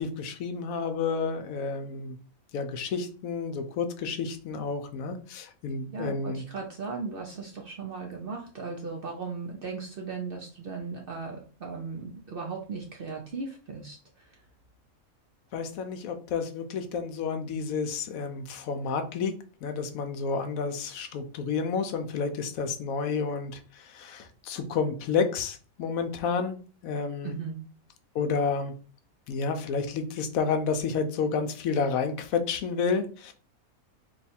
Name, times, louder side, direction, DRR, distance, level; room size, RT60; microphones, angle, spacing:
voice 1, 0.0-2.2 2.5-6.4 15.5-19.3 19.6-27.3 28.1-28.7 29.3-33.3, left 5 dB, 75° left, 8 dB, 1.0 m, -30 dB
voice 2, 5.9-14.4 27.2-27.6, right 4 dB, 60° right, 1 dB, 0.6 m, -37 dB
3.0 x 2.3 x 4.2 m, 0.39 s
omnidirectional pair, 1.5 m